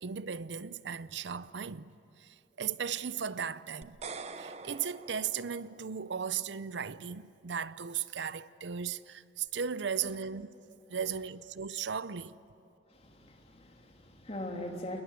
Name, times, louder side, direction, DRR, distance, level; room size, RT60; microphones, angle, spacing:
voice 1, 0.0-4.0 4.4-10.5 10.9-12.4, right 7 dB, 80° right, 0.6 m, -36 dB
sound 1, 3.8-6.1, right 4 dB, 40° right, 1.0 m, -45 dB
voice 2, 12.9-15.0, left 1 dB, 35° left, 3.3 m, -41 dB
28.5 x 20.5 x 9.5 m
head